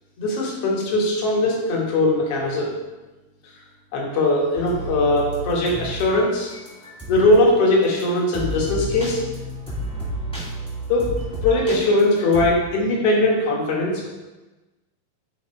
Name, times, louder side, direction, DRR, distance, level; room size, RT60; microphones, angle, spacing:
voice 1, 0.2-2.7 3.9-6.5 7.1-9.2 10.9-11.1 11.4-14.1, left 2 dB, 55° left, -2 dB, 1.7 m, -20 dB
sound 1, 4.5-7.4 7.8-8.0 8.3-12.5, right 1 dB, 5° left, 0.4 m, -31 dB
7.9 x 3.7 x 4.4 m, 1.1 s
omnidirectional pair, 4.2 m